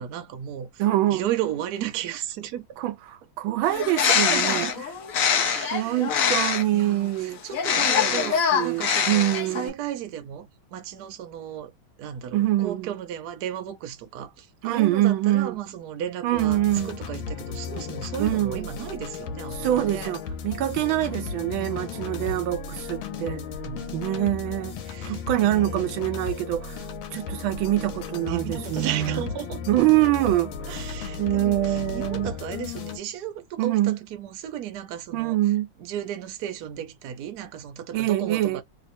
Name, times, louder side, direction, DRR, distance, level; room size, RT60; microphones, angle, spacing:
voice 1, 0.0-0.8 1.1-2.7 4.0-4.8 5.3-6.0 6.7-20.1 21.6-22.4 23.1-23.9 24.8-25.8 28.2-29.8 30.7-35.4 35.8-38.6, right 10 dB, 65° right, 1.1 m, -35 dB
voice 2, 0.8-1.2 2.8-4.7 5.7-7.4 8.0-9.7 12.3-12.9 14.6-15.6 16.2-17.0 18.2-18.7 19.5-23.4 23.9-24.8 25.1-29.2 29.7-30.8 31.2-32.3 33.6-34.0 35.1-35.7 37.9-38.6, right 14 dB, 85° right, 1.4 m, -25 dB
Bird, 3.7-6.8 7.5-9.7, left 7 dB, 65° left, 0.8 m, -24 dB
sound 1, 16.3-33.0, left 6 dB, 90° left, 1.5 m, -35 dB
3.1 x 2.8 x 2.6 m
omnidirectional pair, 2.2 m